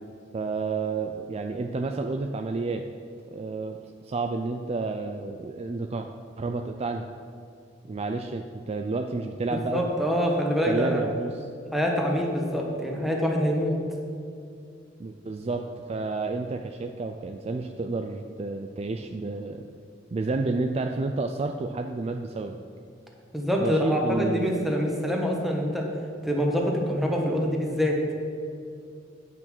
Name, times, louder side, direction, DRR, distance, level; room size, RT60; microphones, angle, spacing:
voice 1, 0.3-2.8 3.3-3.8 4.0-6.1 6.4-7.1 7.9-9.9 10.7-11.5 15.0-19.6 20.1-22.6 23.6-24.7, right 3 dB, 35° right, 5 dB, 0.4 m, -30 dB
voice 2, 9.5-11.0 11.7-13.8 23.3-25.9 26.2-28.0, equal, ahead, -1 dB, 1.3 m, -25 dB
9.0 x 6.0 x 6.1 m, 2.5 s
head